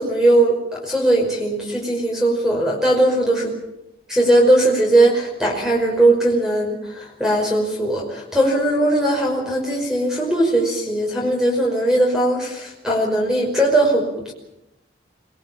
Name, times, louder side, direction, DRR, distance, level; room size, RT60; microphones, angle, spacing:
voice 1, 0.0-3.5 4.1-14.3, right 1 dB, 5° right, -1 dB, 5.2 m, -19 dB
26.5 x 21.0 x 7.5 m, 0.85 s
head